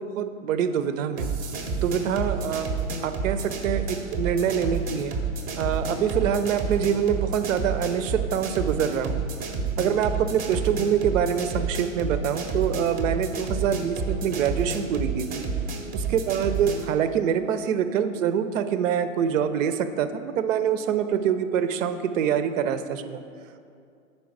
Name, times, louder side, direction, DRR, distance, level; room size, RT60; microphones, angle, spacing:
voice 1, 0.0-1.4 1.7-2.7 3.0-5.1 5.6-9.2 9.8-15.5 15.9-23.2, right 8 dB, 70° right, 10 dB, 0.6 m, -25 dB
sound 1, 1.2-16.9, right 4 dB, 20° right, 0.6 m, -30 dB
5.3 x 4.5 x 5.9 m, 2.4 s
hypercardioid pair, 115°, 41 cm